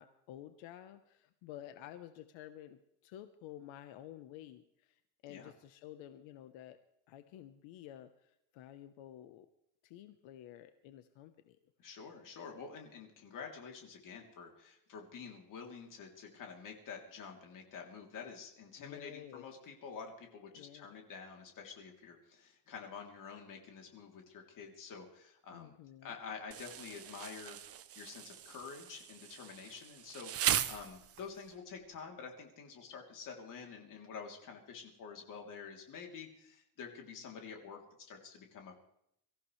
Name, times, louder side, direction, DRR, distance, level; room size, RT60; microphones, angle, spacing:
voice 1, 0.0-6.8 7.1-9.5 9.8-11.6 18.8-19.4 20.5-20.9 25.5-26.1, left 12 dB, 85° left, 9 dB, 1.1 m, -51 dB
voice 2, 11.8-25.7 26.0-38.7, left 5 dB, 45° left, 2 dB, 3.2 m, -48 dB
Insect, 26.5-31.5, right 11 dB, 30° right, 0.6 m, -38 dB
23.5 x 15.0 x 3.3 m, 0.76 s
cardioid pair, 175°, 45 cm